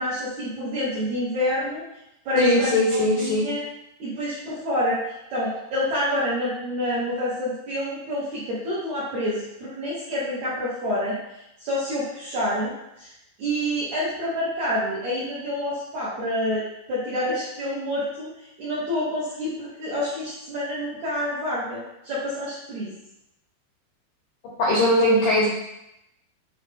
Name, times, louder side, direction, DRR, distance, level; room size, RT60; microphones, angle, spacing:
voice 1, 0.0-1.8 2.3-3.6 4.0-11.2 11.6-13.1 13.4-16.6 16.9-22.9, left 1 dB, 70° right, -9 dB, 1.7 m, -28 dB
voice 2, 2.4-3.5 24.6-25.5, left 1 dB, 75° left, -4 dB, 1.9 m, -20 dB
8.8 x 3.2 x 3.5 m, 0.85 s
omnidirectional pair, 5.0 m